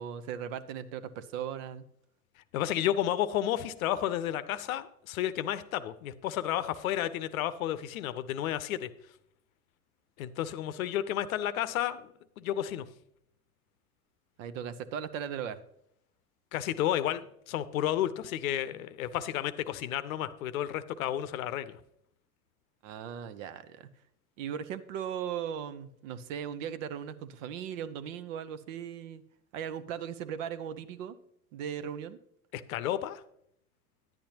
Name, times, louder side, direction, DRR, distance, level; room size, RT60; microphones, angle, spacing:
voice 1, 0.0-1.9 14.4-15.6 22.8-23.9 24.4-29.2 29.5-31.2 31.5-32.2, right 8 dB, 55° right, 14 dB, 0.8 m, -38 dB
voice 2, 2.5-8.9 10.2-12.9 16.5-21.8 32.5-33.2, left 12 dB, 65° left, 14 dB, 0.7 m, -32 dB
10.5 x 10.0 x 2.9 m, 0.72 s
figure-of-eight pair, 80°, 46 cm